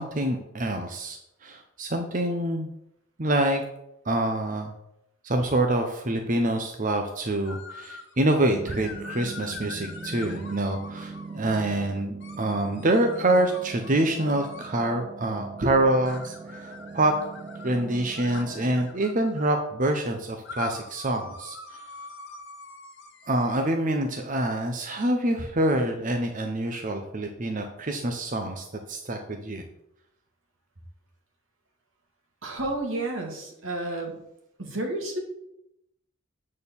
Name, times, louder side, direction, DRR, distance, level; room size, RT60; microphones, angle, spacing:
voice 1, 0.0-2.7 3.2-3.6 4.0-4.7 5.2-17.2 17.6-21.9 23.2-29.6, right 1 dB, 40° right, 4 dB, 0.8 m, -26 dB
sound 1, 7.5-8.1 8.7-11.5 12.2-14.8 16.0-19.5 20.5-23.6, left 4 dB, 60° left, 1.3 m, -43 dB
sound 2, 8.5-18.9, right 4 dB, 20° right, 0.3 m, -40 dB
voice 2, 32.4-34.2 34.6-35.2, right 2 dB, 80° right, 1 dB, 2.2 m, -31 dB
8.6 x 4.4 x 7.0 m, 0.81 s
head